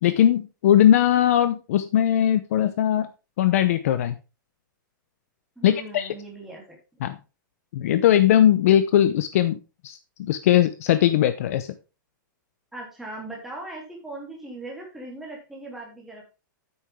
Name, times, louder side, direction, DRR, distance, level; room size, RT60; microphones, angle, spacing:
voice 1, 0.0-3.1 3.4-4.2 5.6-6.1 7.0-7.2 7.7-9.6 9.8-11.7, left 11 dB, 45° left, 12 dB, 0.7 m, -20 dB
voice 2, 5.6-6.6 7.0-7.1 12.7-16.2, right 2 dB, ahead, -3 dB, 3.0 m, -39 dB
8.8 x 8.7 x 3.6 m, 0.30 s
supercardioid pair, 175°, 11 cm